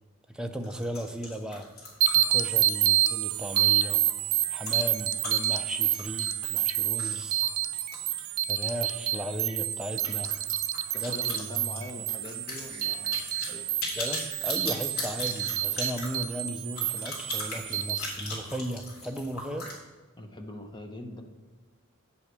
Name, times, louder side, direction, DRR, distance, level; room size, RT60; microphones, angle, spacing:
voice 1, 0.3-1.7 2.1-4.0 4.5-7.4 8.5-10.3 11.0-11.9 14.0-19.7, equal, 5° right, 5 dB, 0.5 m, -36 dB
sound 1, 0.6-8.8 9.1-9.2 9.5-9.6 9.9-19.8, left 2 dB, 70° left, 3.3 m, -39 dB
sound 2, 2.0-18.0, right 12 dB, 75° right, 0.5 m, -28 dB
voice 2, 10.9-13.6 20.2-21.2, left 1 dB, 20° left, 4 dB, 0.9 m, -43 dB
9.6 x 7.9 x 4.7 m, 1.3 s
head